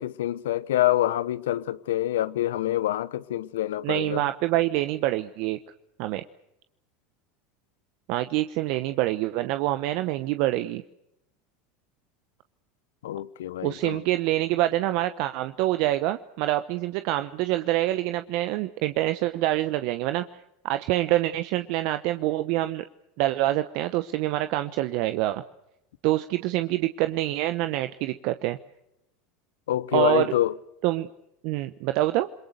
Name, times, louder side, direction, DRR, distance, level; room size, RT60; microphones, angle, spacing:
voice 1, 0.0-4.2 13.0-14.0 29.7-30.5, left 13 dB, 80° left, 0.8 m, -26 dB
voice 2, 3.8-5.6 6.0-6.2 8.1-10.8 13.6-20.2 20.6-22.8 23.2-25.4 26.0-28.6 29.9-30.3 30.8-31.1 31.4-32.3, right 15 dB, 65° right, 1.0 m, -26 dB
28.5 x 22.0 x 6.6 m
hypercardioid pair, 85°, 0 cm